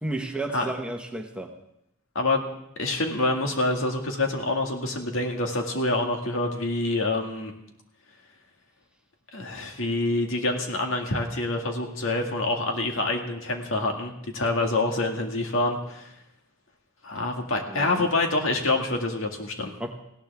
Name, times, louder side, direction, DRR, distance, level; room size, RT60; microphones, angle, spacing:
voice 1, 0.0-1.5 17.7-18.1 19.8-19.9, right 2 dB, 5° right, 3 dB, 1.2 m, -32 dB
voice 2, 2.2-2.5 2.8-7.5 9.3-16.1 17.0-19.7, left 2 dB, 65° left, 3 dB, 2.0 m, -26 dB
19.0 x 16.5 x 3.6 m, 0.80 s
head